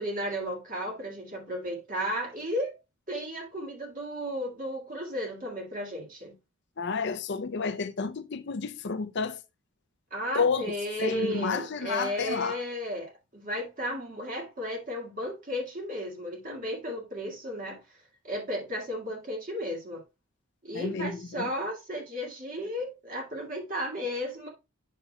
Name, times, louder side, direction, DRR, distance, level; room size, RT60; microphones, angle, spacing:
voice 1, 0.0-2.8 3.1-6.4 10.1-17.8 18.2-20.0 20.6-24.5, equal, 40° right, 2.0 m, -34 dB
voice 2, 6.8-9.4 10.3-12.6 20.7-21.5, left 5 dB, 55° left, 0.6 m, -31 dB
8.2 x 5.9 x 2.3 m
head